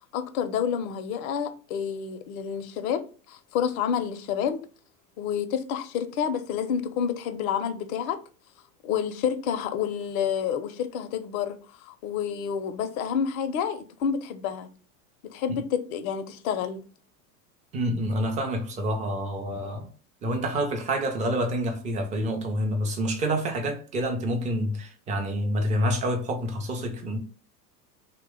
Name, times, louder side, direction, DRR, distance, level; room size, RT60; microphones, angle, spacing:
voice 1, 0.1-4.6 5.2-8.2 8.8-14.7 15.2-16.9, left 8 dB, 60° left, 0.6 m, -29 dB
voice 2, 17.7-19.9 20.2-27.2, equal, 15° right, 0.4 m, -28 dB
2.9 x 2.2 x 3.5 m
hypercardioid pair, 95°, 49 cm